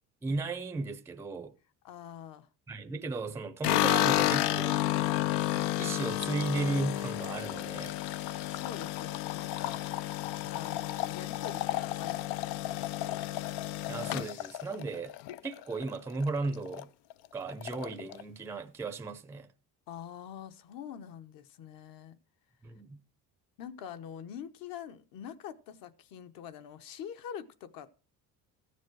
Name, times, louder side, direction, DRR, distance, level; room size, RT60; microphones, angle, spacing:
voice 1, 0.2-1.5 2.7-4.8 5.6-8.0 13.9-15.1 15.4-16.9 17.3-19.5 22.6-23.0, right 3 dB, 5° right, 0.5 m, -35 dB
voice 2, 1.8-2.5 5.0-5.2 8.5-9.8 10.5-13.3 19.9-22.2 23.6-27.9, left 9 dB, 60° left, 1.0 m, -45 dB
sound 1, 3.6-15.9 16.2-16.8 17.1-17.2 17.5-18.2, left 15 dB, 90° left, 0.6 m, -31 dB
14.0 x 7.4 x 4.7 m
cardioid pair, 165°, 38 cm